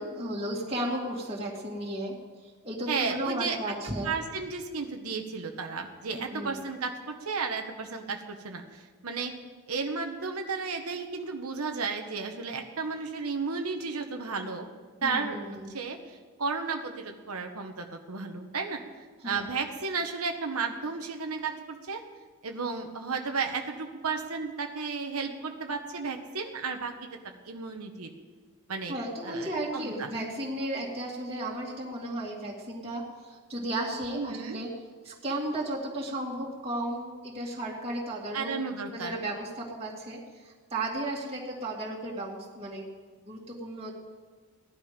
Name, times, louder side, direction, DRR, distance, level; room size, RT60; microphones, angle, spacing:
voice 1, 0.0-2.1 2.4-4.1 6.2-6.6 15.0-15.7 19.2-19.5 28.9-34.7 35.0-38.5 38.9-42.9 43.2-43.9, right 1 dB, 25° right, -5 dB, 2.4 m, -34 dB
voice 2, 2.9-3.6 4.0-9.3 9.7-14.7 15.0-15.4 15.7-18.8 19.2-22.0 22.4-27.1 27.4-28.1 28.7-29.0 29.2-30.1 34.1-34.6 38.3-39.1, right 4 dB, 85° right, 3 dB, 1.2 m, -33 dB
17.5 x 11.5 x 5.2 m, 1.4 s
head